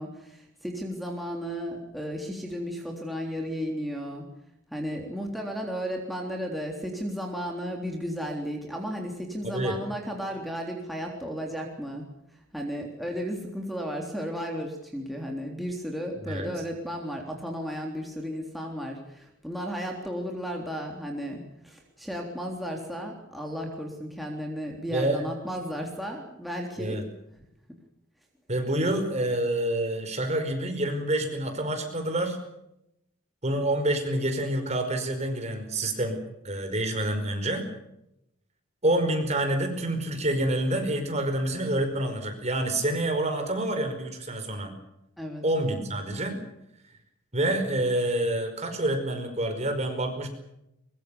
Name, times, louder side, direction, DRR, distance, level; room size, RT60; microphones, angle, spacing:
voice 1, 0.0-4.2 4.7-12.1 12.5-27.0 45.2-45.4, equal, ahead, 0 dB, 3.6 m, -34 dB
voice 2, 9.4-9.8 16.2-16.5 24.9-25.2 26.8-27.1 28.5-32.4 33.4-36.2 36.4-37.6 38.8-44.7 45.4-46.4 47.3-50.3, right 1 dB, 35° right, 6 dB, 5.1 m, -27 dB
23.5 x 23.0 x 7.1 m, 0.83 s
head